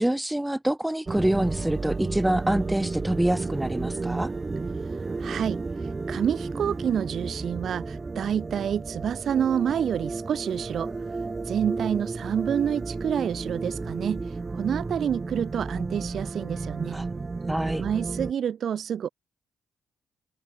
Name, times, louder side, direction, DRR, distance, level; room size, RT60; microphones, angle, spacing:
voice 1, 0.0-4.3 16.9-17.1 17.5-17.8, right 1 dB, 10° right, 0.9 m, -26 dB
sound 1, 1.1-18.3, right 3 dB, 35° right, 1.7 m, -32 dB
voice 2, 5.2-5.6 6.1-10.9 11.5-14.2 14.5-17.0 17.8-19.1, right 8 dB, 65° right, 3.2 m, -28 dB
hypercardioid pair, 45°, 0 cm